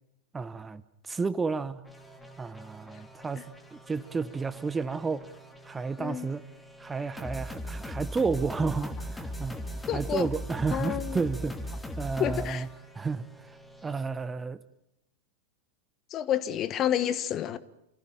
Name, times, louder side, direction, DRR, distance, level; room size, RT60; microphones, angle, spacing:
voice 1, 0.3-0.8 1.1-1.8 2.4-3.4 3.7-5.2 5.6-6.4 6.8-9.6 9.9-11.6 12.0-12.7 13.0-13.2 13.8-14.6, right 4 dB, 15° right, 0.9 m, -31 dB
sound 1, 1.9-13.9, equal, 5° left, 2.6 m, -40 dB
voice 2, 6.0-6.3 9.9-10.3 10.7-11.2 12.2-12.7 16.1-17.6, left 11 dB, 30° left, 1.3 m, -29 dB
28.0 x 16.0 x 9.0 m
figure-of-eight pair, 90°, 0 cm